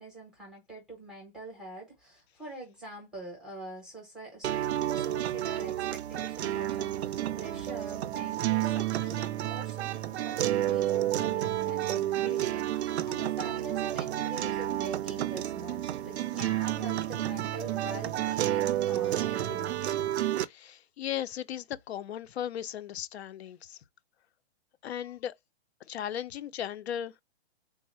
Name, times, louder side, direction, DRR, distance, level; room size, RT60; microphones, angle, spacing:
voice 1, 0.0-4.5 4.9-19.8, right 2 dB, ahead, 0.6 m, -44 dB
sound 1, 4.4-20.5, right 13 dB, 85° right, 0.5 m, -30 dB
voice 2, 20.3-23.8 24.8-25.3 25.9-27.1, left 10 dB, 80° left, 0.5 m, -37 dB
3.7 x 2.0 x 4.1 m
hypercardioid pair, 170°, 32 cm